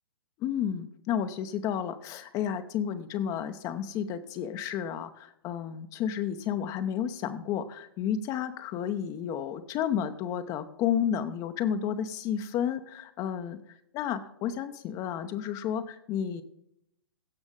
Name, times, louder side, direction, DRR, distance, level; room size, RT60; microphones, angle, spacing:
voice 1, 0.4-13.6 13.9-16.4, left 9 dB, 30° left, 8 dB, 0.7 m, -31 dB
16.5 x 6.1 x 3.7 m, 0.77 s
hypercardioid pair, 125°, 13 cm